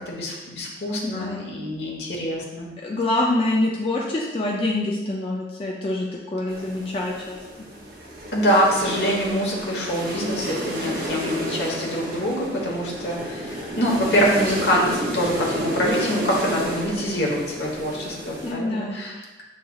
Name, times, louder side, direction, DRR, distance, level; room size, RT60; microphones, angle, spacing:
voice 1, 0.1-2.7 8.3-19.4, equal, 70° left, -2 dB, 1.1 m, -25 dB
voice 2, 1.0-1.5 2.8-7.4 18.4-19.3, left 2 dB, 30° left, -3 dB, 0.4 m, -26 dB
sound 1, 6.5-18.5, right 1 dB, 55° right, 0.8 m, -31 dB
7.1 x 3.2 x 2.3 m, 1.1 s
head